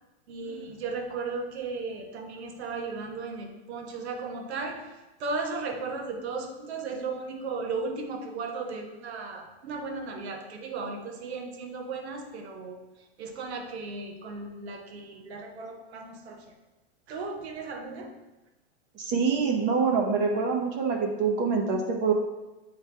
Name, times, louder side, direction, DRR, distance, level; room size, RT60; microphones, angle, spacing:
voice 1, 0.3-16.5 17.1-18.1, right 4 dB, 75° right, 3 dB, 1.1 m, -36 dB
voice 2, 19.0-22.1, right 5 dB, 35° right, 2 dB, 0.9 m, -25 dB
8.7 x 3.3 x 3.4 m, 1.1 s
supercardioid pair, 155°, 33 cm